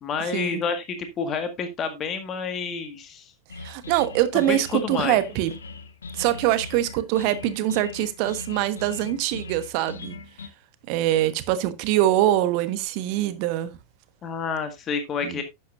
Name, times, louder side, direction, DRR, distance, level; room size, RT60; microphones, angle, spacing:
voice 1, 0.0-3.3 4.5-5.2 14.2-15.4, left 5 dB, 30° left, 1.7 m, -29 dB
sound 1, 3.5-10.5, left 4 dB, 70° left, 1.0 m, -40 dB
voice 2, 3.6-5.5 6.1-10.2 10.9-13.7 15.2-15.4, right 13 dB, 45° right, 1.2 m, -24 dB
11.5 x 8.4 x 2.5 m
figure-of-eight pair, 90°, 0 cm